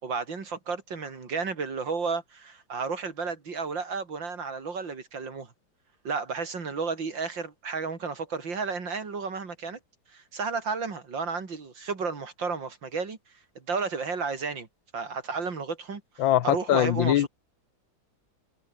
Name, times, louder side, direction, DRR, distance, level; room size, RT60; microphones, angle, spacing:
voice 1, 0.0-5.5 6.0-9.8 10.1-13.2 13.6-14.7 14.9-17.3, right 4 dB, 75° right, 3.8 m, -32 dB
voice 2, 16.2-17.3, left 13 dB, 80° left, 1.6 m, -22 dB
omnidirectional pair, 2.1 m